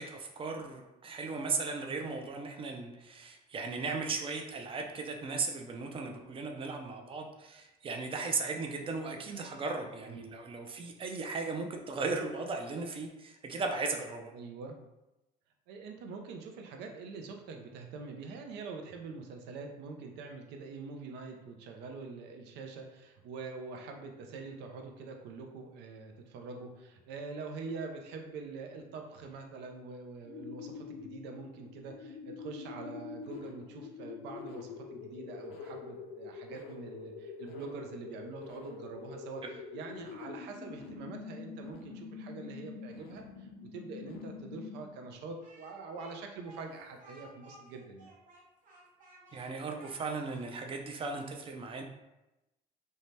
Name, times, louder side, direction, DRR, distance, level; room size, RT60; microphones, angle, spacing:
voice 1, 0.0-14.3 39.4-39.5 49.3-51.8, right 4 dB, 30° right, 3 dB, 0.4 m, -37 dB
voice 2, 14.3-14.8 15.7-48.1, right 4 dB, 85° right, 3 dB, 0.5 m, -45 dB
sound 1, 30.2-45.1, left 5 dB, 75° left, 0.5 m, -45 dB
Speech, 45.4-50.5, right 1 dB, 50° right, 0.8 m, -57 dB
2.7 x 2.1 x 3.1 m, 0.97 s
cardioid pair, 110°, 17 cm